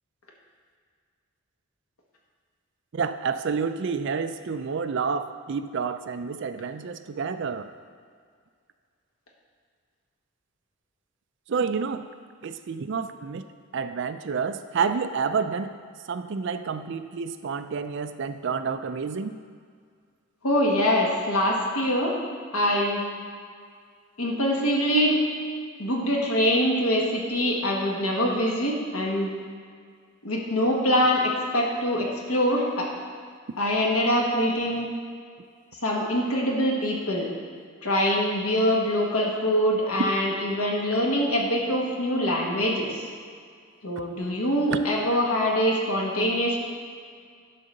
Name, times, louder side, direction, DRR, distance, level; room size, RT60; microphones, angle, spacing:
voice 1, 2.9-7.7 11.5-12.1 12.4-13.4 13.7-15.7 16.1-19.4 44.7-44.8, right 5 dB, 55° right, 10 dB, 0.4 m, -29 dB
voice 2, 20.4-22.1 22.5-23.0 24.2-25.2 25.8-29.3 30.2-32.9 33.6-34.9 35.8-37.3 37.8-43.1 43.8-46.6, equal, 75° left, -2 dB, 1.5 m, -24 dB
11.0 x 3.9 x 6.4 m, 2.1 s
head